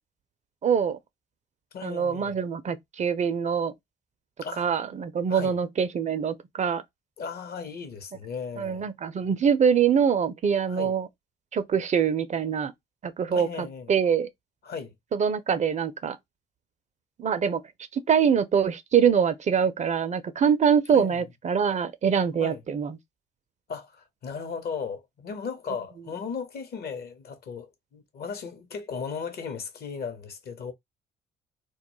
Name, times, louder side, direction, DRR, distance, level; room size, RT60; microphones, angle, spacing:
voice 1, 0.6-1.0 1.8-3.7 4.6-6.8 8.6-11.1 11.5-12.7 13.0-14.3 15.1-16.2 17.2-17.6 17.9-23.0, right 7 dB, 35° right, 0.4 m, -24 dB
voice 2, 1.7-2.4 4.4-4.7 5.3-5.6 7.2-8.9 10.7-10.9 13.3-13.9 14.6-14.9 20.9-21.2 22.4-22.6 23.7-30.7, left 6 dB, 50° left, 0.7 m, -36 dB
2.2 x 2.1 x 2.9 m
hypercardioid pair, 50°, 21 cm